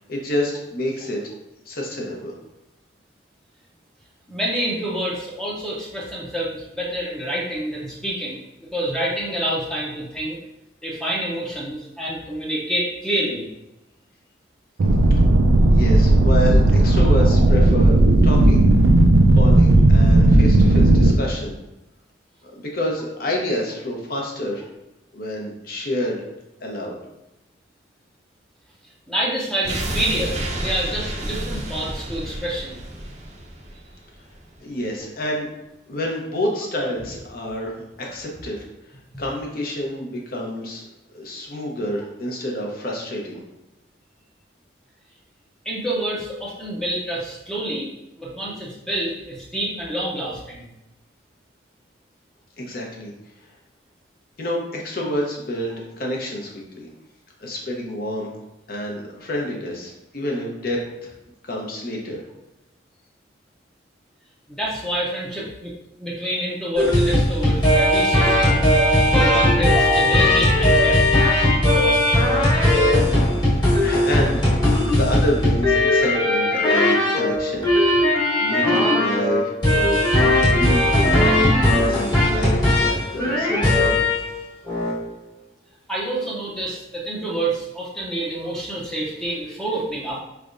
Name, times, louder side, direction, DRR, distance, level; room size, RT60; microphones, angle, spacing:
voice 1, 0.1-1.2 1.7-2.3 15.7-18.0 18.2-18.6 19.3-21.5 22.7-24.6 25.1-26.2 26.6-27.0 34.6-35.5 35.9-38.7 39.2-40.8 41.1-43.4 52.6-53.1 54.4-56.9 57.4-58.3 58.7-61.1 61.4-62.2 73.8-74.6 74.9-77.7 78.4-81.2 81.7-84.0, equal, 50° left, -1 dB, 0.8 m, -28 dB
voice 2, 4.3-10.4 10.8-13.5 29.1-32.8 45.6-47.9 48.2-50.7 64.5-65.7 66.0-68.7 69.0-71.0 85.9-90.2, right 1 dB, 5° left, -5 dB, 0.6 m, -27 dB
sound 1, 14.8-21.1, right 1 dB, 85° right, 0.4 m, -14 dB
sound 2, 29.6-34.6 34.9-35.0, right 1 dB, 35° right, 0.6 m, -30 dB
sound 3, 66.8-84.3 84.7-85.0, left 1 dB, 25° left, 1.2 m, -18 dB
4.5 x 3.4 x 2.5 m, 0.92 s
head